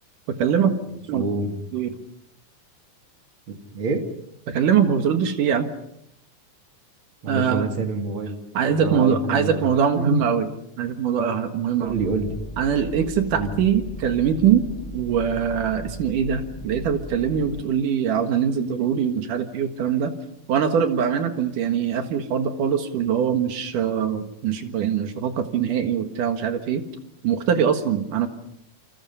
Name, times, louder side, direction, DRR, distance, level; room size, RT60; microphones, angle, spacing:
voice 1, 0.3-0.7 1.1-1.2 1.7-2.0 4.5-5.7 7.3-7.7 8.5-10.5 10.8-11.9 12.6-14.7 14.9-20.1 20.5-26.8 27.2-28.3, right 8 dB, 80° right, 6 dB, 3.2 m, -22 dB
voice 2, 1.1-1.6 3.5-4.0 7.2-8.4 8.7-9.7 9.9-10.2 11.8-12.3 13.3-13.5, right 3 dB, 40° right, 4 dB, 3.1 m, -27 dB
sound 1, 11.8-17.6, left 1 dB, 20° left, 0.8 m, -37 dB
28.5 x 28.0 x 5.6 m, 0.76 s
omnidirectional pair, 3.6 m